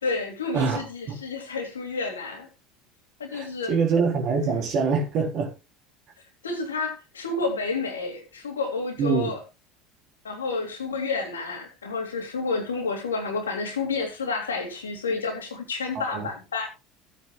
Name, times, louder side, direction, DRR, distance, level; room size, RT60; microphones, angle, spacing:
voice 1, 0.0-2.5 3.2-3.7 6.4-9.4 10.2-16.7, left 4 dB, 85° left, 2.9 m, -30 dB
voice 2, 3.3-5.5 9.0-9.3 16.1-16.3, right 5 dB, 50° right, 4.3 m, -24 dB
16.0 x 8.8 x 2.5 m
figure-of-eight pair, 70°, 0 cm